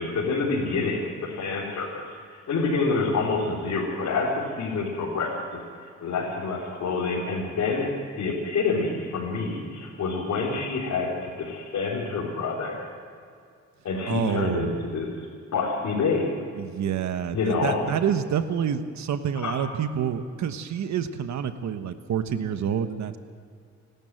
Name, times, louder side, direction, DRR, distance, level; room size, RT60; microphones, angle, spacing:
voice 1, 0.0-2.0 2.3-7.9 8.2-12.9 13.8-15.1 15.5-16.3 17.3-17.8 19.4-19.6, left 4 dB, 70° left, -6 dB, 4.3 m, -27 dB
voice 2, 14.1-14.8 16.6-23.2, right 8 dB, 70° right, 9 dB, 1.2 m, -28 dB
28.5 x 12.5 x 7.7 m, 2.3 s
cardioid pair, 95°, 29 cm